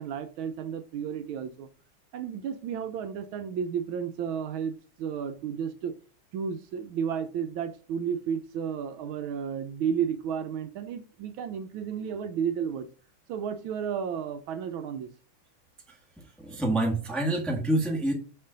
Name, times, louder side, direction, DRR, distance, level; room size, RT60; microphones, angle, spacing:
voice 1, 0.0-1.7 2.1-5.9 6.3-12.9 13.3-15.1, right 7 dB, 80° right, 1.3 m, -32 dB
voice 2, 15.9-18.1, right 1 dB, ahead, 0.9 m, -28 dB
5.6 x 4.4 x 3.8 m
omnidirectional pair, 2.4 m